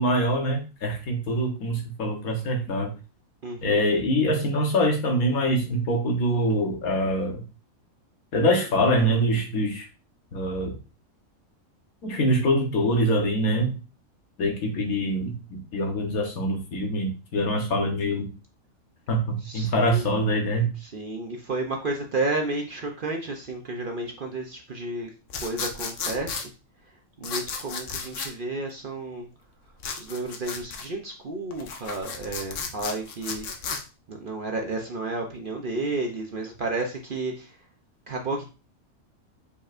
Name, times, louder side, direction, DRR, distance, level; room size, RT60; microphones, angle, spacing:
voice 1, 0.0-2.9 3.6-7.4 8.3-9.9 10.3-10.8 12.0-13.7 14.4-18.3 19.1-20.7, equal, 80° left, 2 dB, 1.6 m, -24 dB
voice 2, 3.4-3.8 19.4-20.1 20.8-25.1 25.4-26.5 26.8-26.9 27.2-29.3 30.0-33.7 34.1-37.6 38.1-38.4, right 2 dB, 50° right, 2 dB, 0.7 m, -32 dB
sound 1, 25.3-26.5 27.2-28.3 29.8-30.9 31.5-33.8, left 5 dB, 65° left, 1.0 m, -33 dB
5.1 x 4.1 x 2.5 m, 0.32 s
omnidirectional pair, 1.5 m